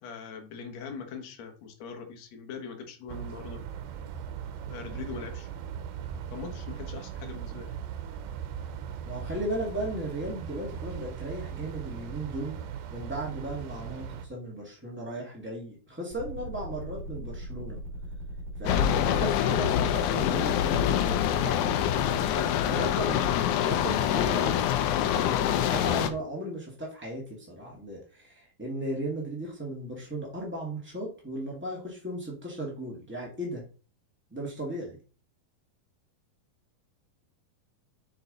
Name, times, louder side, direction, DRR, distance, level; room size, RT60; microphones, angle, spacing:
voice 1, 0.0-3.6 4.7-5.5 6.3-7.7, left 5 dB, 55° left, 4 dB, 2.3 m, -41 dB
sound 1, 3.1-14.3, right 8 dB, 75° right, 2.4 m, -39 dB
voice 2, 9.0-12.6 12.9-17.8 18.6-33.6 34.3-35.0, right 1 dB, 15° right, -3 dB, 0.3 m, -36 dB
sound 2, 16.1-22.3, right 1 dB, 35° right, 2.2 m, -39 dB
sound 3, 18.7-26.1, left 10 dB, 85° left, 1.7 m, -25 dB
6.8 x 5.9 x 4.0 m, 0.37 s
omnidirectional pair, 4.3 m